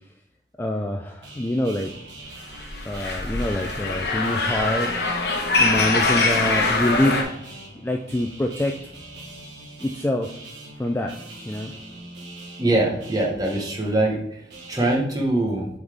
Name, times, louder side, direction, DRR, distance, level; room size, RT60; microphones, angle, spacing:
voice 1, 0.6-1.9 2.8-4.9 5.6-7.3 7.8-8.7 9.8-10.3 10.8-11.2 11.5-11.7, left 1 dB, 10° left, 2 dB, 0.3 m, -25 dB
sound 1, 1.2-14.9, right 2 dB, 70° right, 1.6 m, -42 dB
sound 2, 2.5-7.2, left 3 dB, 60° left, 1.1 m, -23 dB
voice 2, 12.6-14.2 14.7-15.7, right 2 dB, 20° right, -1 dB, 1.1 m, -22 dB
7.9 x 4.0 x 3.5 m, 0.74 s
head